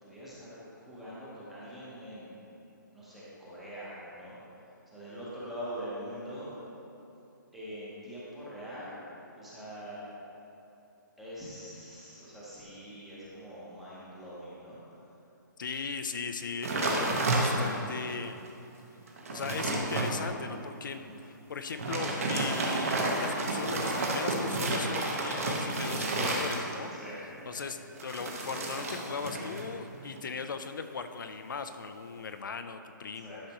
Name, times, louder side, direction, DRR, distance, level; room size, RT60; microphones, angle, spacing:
voice 1, 0.0-2.3 2.9-4.4 4.9-6.6 7.5-9.1 9.3-10.0 11.2-14.8 20.9-21.2 27.0-27.6 33.2-33.4, equal, ahead, -9 dB, 0.8 m, -43 dB
voice 2, 15.6-18.5 19.3-26.9 27.5-33.5, left 5 dB, 70° left, 8 dB, 0.5 m, -38 dB
sound 1, 16.6-17.9 18.5-18.6 19.0-20.1 21.7-27.0 28.0-29.7 29.9-30.3, right 2 dB, 45° right, 1.1 m, -31 dB
11.5 x 6.5 x 3.0 m, 2.9 s
hypercardioid pair, 180°, 11 cm